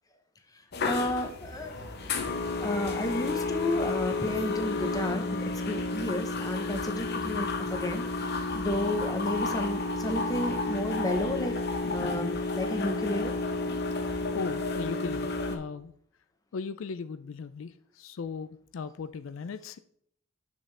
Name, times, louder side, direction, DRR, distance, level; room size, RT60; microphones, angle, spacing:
sound 1, 0.7-15.6, left 3 dB, 55° left, 0.8 m, -31 dB
voice 1, 0.8-1.8 2.6-13.4, left 1 dB, 20° left, 6 dB, 0.9 m, -32 dB
voice 2, 14.3-15.9 16.5-19.8, left 5 dB, 85° left, 13 dB, 0.4 m, -38 dB
6.5 x 6.2 x 3.3 m, 0.65 s
head